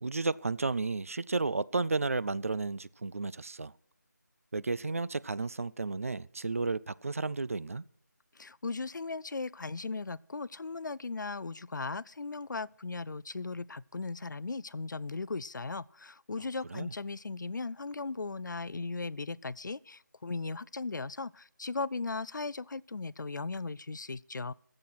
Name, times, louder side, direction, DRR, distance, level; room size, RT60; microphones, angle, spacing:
voice 1, 0.0-3.7 4.5-7.8 16.7-16.9, right 3 dB, 50° right, 0.4 m, -32 dB
voice 2, 8.4-24.5, left 3 dB, 85° left, 0.4 m, -37 dB
14.5 x 7.5 x 6.0 m
figure-of-eight pair, 170°, 10 cm